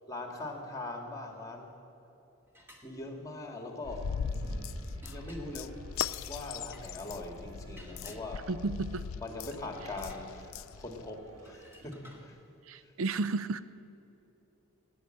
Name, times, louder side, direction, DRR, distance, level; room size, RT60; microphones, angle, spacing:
voice 1, 0.1-1.7 2.8-4.1 5.1-5.8 6.3-8.5 9.2-12.4 12.8-12.9, left 2 dB, 15° left, 3 dB, 1.8 m, -41 dB
sound 1, 2.5-2.9 5.0-5.7 6.6-6.9 7.8-8.7 9.4-10.8 11.4-12.3, left 1 dB, 10° right, 1.6 m, -55 dB
sound 2, 3.8-11.9, equal, 85° right, 2.0 m, -47 dB
sound 3, 3.9-11.1, left 7 dB, 65° left, 0.4 m, -40 dB
voice 2, 8.5-9.1 12.6-13.6, right 3 dB, 65° right, 14 dB, 0.4 m, -33 dB
18.5 x 9.7 x 7.7 m, 3.0 s
head